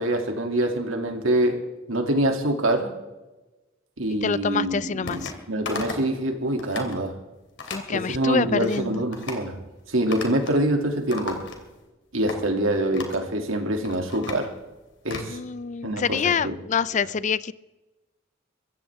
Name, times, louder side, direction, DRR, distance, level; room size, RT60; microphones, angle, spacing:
voice 1, 0.0-2.9 4.0-7.1 7.9-9.6 9.9-11.4 12.1-14.5 15.0-15.4 15.8-16.6, right 1 dB, 90° right, 3 dB, 2.7 m, -25 dB
voice 2, 4.2-5.3 7.7-9.0 15.3-17.5, left 6 dB, 35° left, 18 dB, 0.4 m, -26 dB
sound 1, 5.1-5.4 5.7-6.1 6.5-6.9 7.6-7.9 8.4-8.8 9.1-9.5 10.1-10.6 10.9-11.8 12.3-12.4 12.9-13.2 13.7-15.3, left 3 dB, 60° left, 2.8 m, -36 dB
23.5 x 15.0 x 3.6 m, 1.1 s
head